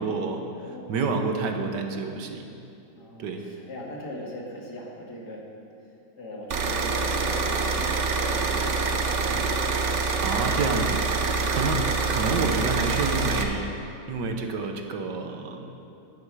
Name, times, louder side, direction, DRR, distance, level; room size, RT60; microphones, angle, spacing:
voice 1, 0.0-0.4 0.9-2.5 3.2-3.4 9.9-13.7 14.1-15.7, right 4 dB, 70° right, 4 dB, 1.4 m, -29 dB
voice 2, 0.5-1.1 3.0-5.4 6.2-9.5, left 1 dB, 60° left, -2 dB, 2.3 m, -40 dB
sound 1, 6.5-13.4, right 4 dB, 55° right, 0.9 m, -26 dB
13.0 x 9.8 x 4.7 m, 2.7 s
omnidirectional pair, 2.0 m